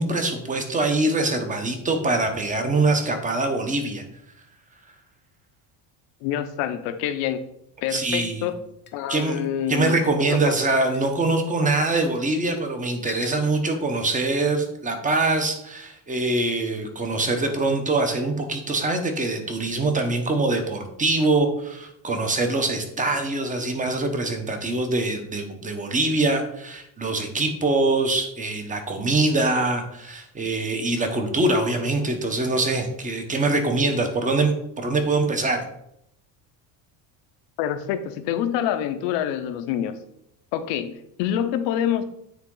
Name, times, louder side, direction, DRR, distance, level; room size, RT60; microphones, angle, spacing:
voice 1, 0.0-4.0 7.9-8.5 9.1-9.4 9.7-34.5 34.8-35.6, right 2 dB, 20° right, 5 dB, 1.0 m, -24 dB
voice 2, 6.2-7.4 7.8-8.6 8.9-10.5 37.6-39.9 40.5-42.0, left 10 dB, 85° left, 9 dB, 0.8 m, -26 dB
sound 1, 8.9-9.0 9.9-10.1 10.9-11.1 12.1-12.3 13.1-13.4, left 8 dB, 25° left, 0.7 m, -39 dB
9.0 x 3.7 x 3.8 m, 0.78 s
cardioid pair, 135°, 43 cm